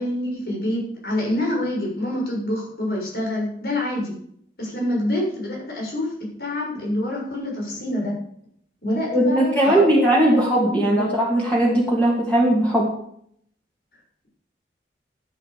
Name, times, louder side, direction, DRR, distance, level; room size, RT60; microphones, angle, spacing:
voice 1, 0.0-4.1 4.6-6.1 6.4-8.1 8.8-10.1 10.3-11.1, left 1 dB, 60° left, -2 dB, 7.1 m, -26 dB
voice 2, 9.1-12.9, right 1 dB, 10° left, -4 dB, 2.6 m, -19 dB
13.0 x 9.6 x 6.9 m, 0.68 s
head